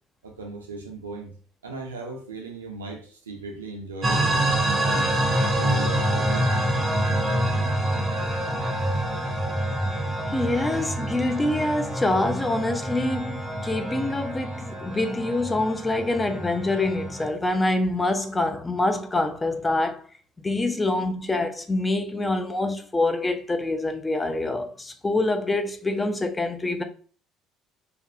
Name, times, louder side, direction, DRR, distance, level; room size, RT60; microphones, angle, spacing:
voice 1, 0.2-1.3 1.6-5.1 5.5-6.5, right 3 dB, 90° right, 0.4 m, -37 dB
sound 1, 4.0-17.3, right 1 dB, 30° right, 0.6 m, -26 dB
voice 2, 10.3-20.0 20.4-26.8, left 2 dB, 20° left, 0.4 m, -25 dB
2.4 x 2.2 x 2.6 m
hypercardioid pair, 60°, 0 cm